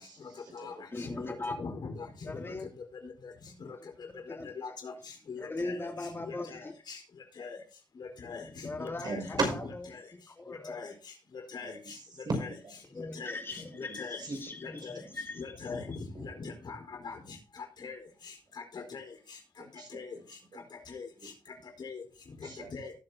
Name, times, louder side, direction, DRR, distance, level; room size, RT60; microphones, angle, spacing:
voice 1, 0.0-0.7 9.0-9.6 11.6-12.3 12.6-12.7 13.7-14.4 14.6-14.7 15.0-15.1 16.1-16.3 19.6-20.2 20.5-20.6 21.2-21.3 22.4-22.9, right 3 dB, 55° right, 2 dB, 5.7 m, -37 dB
voice 2, 0.9-1.5 2.3-2.7 4.3-4.5 5.4-6.7 8.6-9.4 10.4-10.8 12.9-15.4, left 2 dB, 30° left, 4 dB, 2.6 m, -39 dB
voice 3, 1.6-1.9 2.3-2.4 4.6-4.9 5.3-5.8 6.3-7.0 7.4-7.6 8.0-8.4 8.8-9.4 10.7-10.9 11.5-11.7 12.4-12.5 13.1-13.3 13.8-14.2 14.6-14.9 15.4-15.8 16.2-16.8 17.0-17.1 17.8-18.0 18.7-19.0 19.9-20.1 20.9-21.1 21.8-22.0 22.7-22.9, left 5 dB, 60° left, 3 dB, 4.4 m, -41 dB
18.0 x 7.5 x 2.8 m, 0.36 s
cardioid pair, 85°, 8 cm